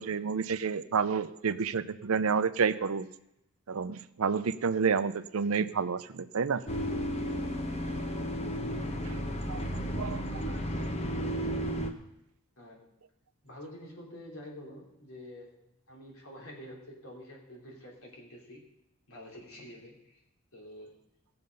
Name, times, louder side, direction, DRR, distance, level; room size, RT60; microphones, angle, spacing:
voice 1, 0.0-3.1 3.7-6.6 9.1-9.2 9.5-10.6, right 5 dB, 80° right, 13 dB, 0.6 m, -30 dB
sound 1, 6.7-11.9, equal, 30° left, 0.9 m, -33 dB
voice 2, 10.7-11.7 12.6-12.9 13.4-15.6 15.9-18.7 19.1-20.2 20.5-21.1, left 1 dB, 75° left, -1 dB, 3.4 m, -48 dB
17.5 x 6.8 x 5.4 m, 0.85 s
head